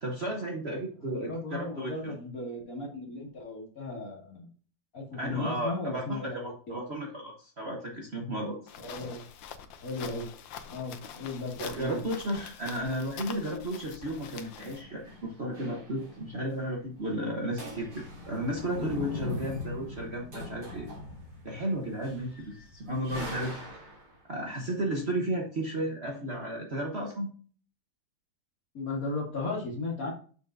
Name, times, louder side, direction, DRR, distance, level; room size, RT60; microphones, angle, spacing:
voice 1, 0.0-2.1 5.1-8.6 11.6-20.9 21.4-23.6 24.3-27.3, right 1 dB, 40° right, 0 dB, 1.1 m, -33 dB
voice 2, 1.0-4.5 4.9-6.8 8.8-9.2 9.8-10.3 10.7-12.0 28.7-30.1, left 2 dB, 45° left, -1 dB, 2.4 m, -36 dB
sound 1, 8.7-14.8, left 8 dB, 80° left, 1.4 m, -45 dB
sound 2, 13.9-16.4 16.6-16.7 17.0-17.3 17.5-24.1, left 2 dB, 60° right, 3.2 m, -41 dB
7.1 x 6.5 x 2.6 m, 0.42 s
omnidirectional pair, 2.1 m